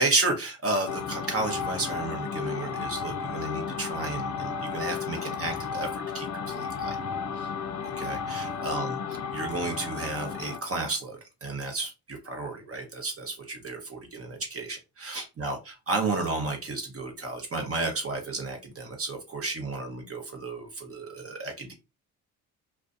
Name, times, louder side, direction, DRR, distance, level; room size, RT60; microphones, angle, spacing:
voice 1, 0.0-5.9 6.1-7.0 7.4-7.5 7.8-9.0 9.3-21.7, right 3 dB, 35° right, 4 dB, 1.0 m, -32 dB
sound 1, 0.9-10.7, left 6 dB, 40° left, 0.5 m, -33 dB
2.4 x 2.2 x 2.5 m, 0.26 s
hypercardioid pair, 60°, 42 cm